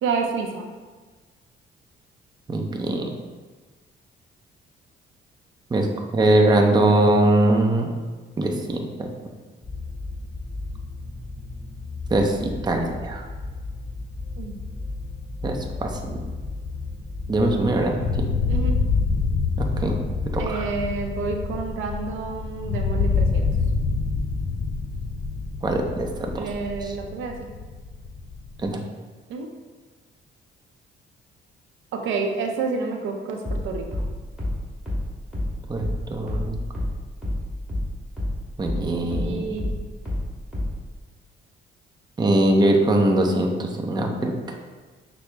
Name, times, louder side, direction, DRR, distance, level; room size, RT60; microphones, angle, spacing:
voice 1, 0.0-0.7 14.4-14.6 18.5-18.7 20.4-23.5 26.4-27.4 29.3-29.5 31.9-34.0 38.9-39.7, right 4 dB, 80° right, 3 dB, 0.5 m, -29 dB
voice 2, 2.5-3.1 5.7-5.9 6.1-7.9 8.4-9.1 12.1-13.2 15.4-15.9 17.3-18.3 19.6-19.9 20.3-20.7 25.6-26.5 26.8-26.9 28.6-28.8 35.7-36.6 38.6-39.7 42.2-44.5, right 1 dB, 20° right, 2 dB, 0.5 m, -22 dB
sound 1, 9.6-28.3, left 3 dB, 15° left, 1.3 m, -37 dB
sound 2, 16.0-17.7 18.0-28.7, left 4 dB, 60° left, 0.5 m, -26 dB
sound 3, 33.4-38.4 38.6-40.9, left 1 dB, 5° right, 1.5 m, -28 dB
5.9 x 2.0 x 3.3 m, 1.3 s
cardioid pair, 90°, 20 cm